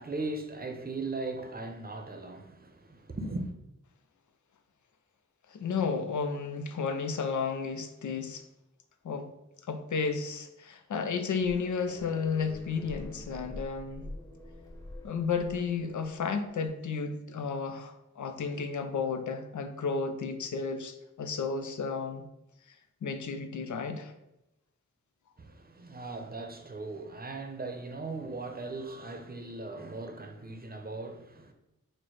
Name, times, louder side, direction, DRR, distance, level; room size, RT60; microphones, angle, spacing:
voice 1, 0.0-3.5 25.4-31.5, right 3 dB, 30° right, 0.7 m, -38 dB
voice 2, 5.5-8.4 9.0-9.3 9.7-14.1 15.0-22.2 23.0-24.1, left 5 dB, 85° left, 0.5 m, -32 dB
sound 1, 11.3-16.7, left 1 dB, 10° left, 0.7 m, -46 dB
4.3 x 2.1 x 4.6 m
wide cardioid pair, 55°, 29 cm